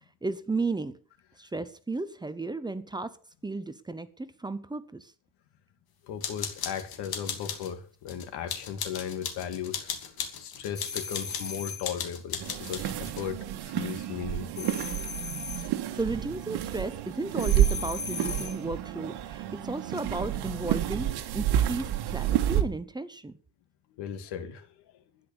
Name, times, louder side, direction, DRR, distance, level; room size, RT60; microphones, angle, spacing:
voice 1, 0.2-1.0 1.4-3.2 3.4-5.1 15.6-23.4, right 3 dB, 10° right, 0.8 m, -34 dB
voice 2, 6.0-9.9 10.4-14.7 23.9-24.7, left 8 dB, 90° left, 2.3 m, -36 dB
sound 1, 6.2-7.7 8.1-13.2, left 8 dB, 65° left, 2.7 m, -37 dB
sound 2, 10.7-11.9 14.5-15.7 17.4-18.6, left 5 dB, 25° left, 1.7 m, -37 dB
sound 3, 12.4-22.6, right 11 dB, 80° right, 1.7 m, -30 dB
12.0 x 10.0 x 6.9 m
cardioid pair, 155°, 39 cm